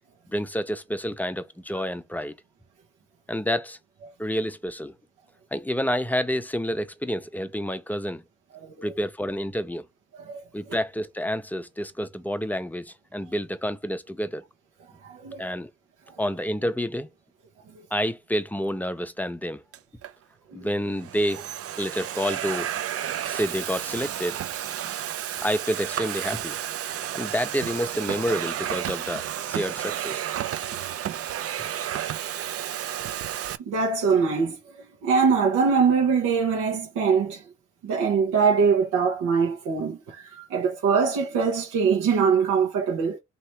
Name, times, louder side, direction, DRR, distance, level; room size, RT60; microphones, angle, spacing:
voice 1, 0.3-2.3 3.3-3.8 4.2-4.9 5.5-8.2 8.8-9.9 10.5-14.4 15.4-15.7 16.2-17.1 17.9-19.6 20.5-21.5 21.8-22.7 23.3-24.4 25.4-26.6 27.1-30.2, equal, 5° left, 0.5 m, -29 dB
voice 2, 15.0-15.4 20.5-20.6 33.7-34.6 35.0-37.4 37.8-43.2, right 5 dB, 90° right, 1.1 m, -23 dB
Domestic sounds home sounds, 19.7-20.1 20.8-33.6, right 11 dB, 50° right, 0.5 m, -32 dB
3.2 x 2.8 x 4.5 m
cardioid pair, 90°, 30 cm